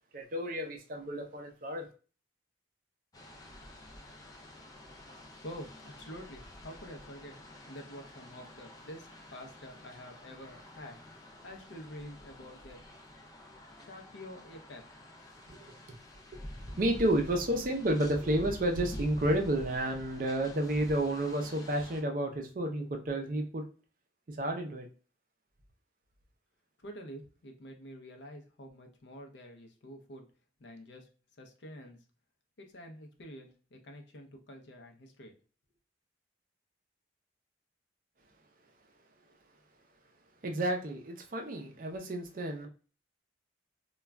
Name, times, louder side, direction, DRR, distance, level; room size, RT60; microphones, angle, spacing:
voice 1, 0.1-1.9 15.5-15.7 16.8-23.6 24.3-24.9 40.4-42.7, right 1 dB, 45° right, 0.5 m, -31 dB
sound 1, 3.1-22.0, left 1 dB, 20° left, 0.3 m, -48 dB
voice 2, 5.4-7.4 7.7-11.0 11.4-12.9 13.8-14.8 26.8-30.3 30.6-31.1 31.4-32.0 32.6-35.3, equal, 70° left, 0.6 m, -48 dB
2.3 x 2.1 x 3.4 m
head